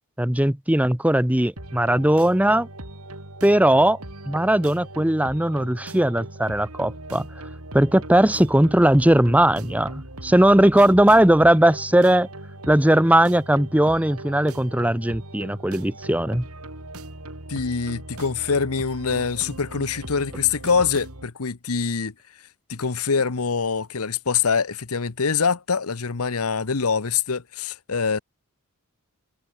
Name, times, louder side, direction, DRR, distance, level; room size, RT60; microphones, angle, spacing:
voice 1, 0.2-2.7 3.4-4.0 4.3-7.3 7.7-12.3 12.7-16.5, right 1 dB, 5° right, 0.9 m, -18 dB
sound 1, 1.6-21.3, right 1 dB, 85° right, 6.9 m, -39 dB
voice 2, 17.5-22.1 22.7-28.2, left 5 dB, 80° left, 1.0 m, -24 dB
head